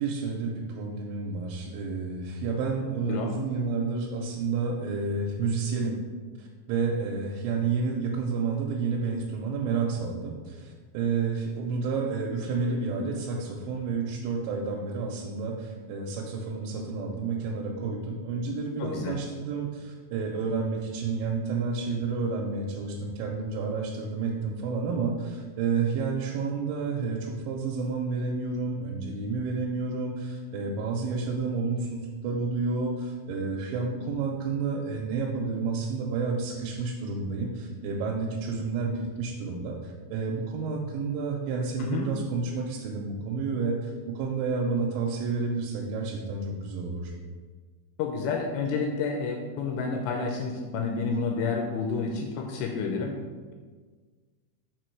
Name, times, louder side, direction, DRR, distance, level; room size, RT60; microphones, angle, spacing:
voice 1, 0.0-6.0 6.4-47.1, right 4 dB, 90° right, -1 dB, 3.0 m, -30 dB
voice 2, 18.8-19.2 41.8-42.1 48.0-53.2, left 4 dB, 80° left, 2 dB, 2.6 m, -30 dB
6.1 x 4.8 x 4.5 m, 1.5 s
omnidirectional pair, 5.1 m